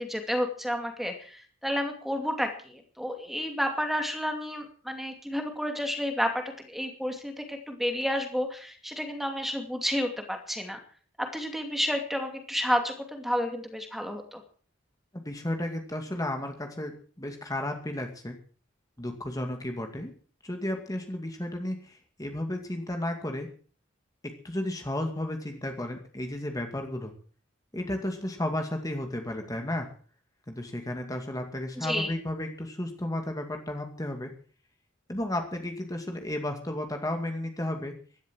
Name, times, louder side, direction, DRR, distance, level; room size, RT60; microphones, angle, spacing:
voice 1, 0.0-6.3 6.7-10.8 11.2-14.4 31.8-32.1, equal, ahead, 4 dB, 2.5 m, -31 dB
voice 2, 15.1-18.4 19.0-20.1 20.4-23.5 24.4-27.1 27.7-29.9 30.5-34.3 35.1-37.9, left 1 dB, 20° left, 4 dB, 2.3 m, -33 dB
16.5 x 12.5 x 6.3 m, 0.43 s
head